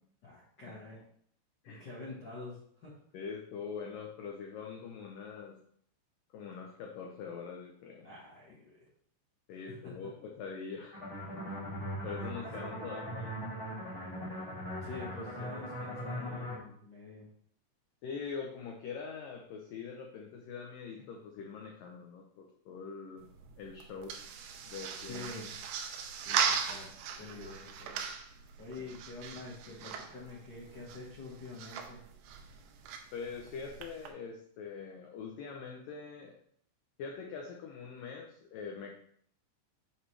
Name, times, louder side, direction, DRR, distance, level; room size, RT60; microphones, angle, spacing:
voice 1, 0.2-1.0 1.6-2.9 8.0-8.9 9.8-10.1 12.7-12.8 14.8-17.3 25.0-25.5 26.2-26.9 27.2-28.0 28.6-32.0, left 3 dB, 65° left, -6 dB, 1.0 m, -46 dB
voice 2, 3.1-5.6 6.3-8.1 9.5-11.0 12.0-13.3 18.0-23.2 23.6-24.2 24.6-25.3 28.7-28.8 33.1-36.3 37.0-38.9, left 5 dB, 85° left, 1 dB, 1.9 m, -43 dB
sound 1, 10.9-16.6, equal, 20° left, 2.4 m, -40 dB
sound 2, 23.2-34.1, right 7 dB, 85° right, 2.9 m, -39 dB
8.6 x 5.5 x 3.3 m, 0.64 s
omnidirectional pair, 5.1 m